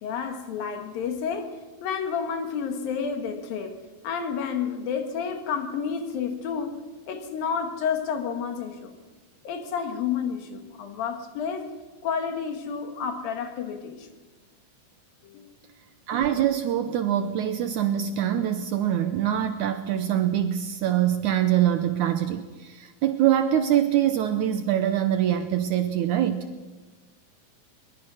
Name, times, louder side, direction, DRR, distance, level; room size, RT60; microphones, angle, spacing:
voice 1, 0.0-6.8 7.1-8.9 9.4-11.7 12.0-14.1 15.2-15.6, left 6 dB, 80° left, 3.4 m, -30 dB
voice 2, 16.1-26.5, right 11 dB, 75° right, 2.0 m, -24 dB
22.5 x 21.5 x 6.2 m
omnidirectional pair, 4.1 m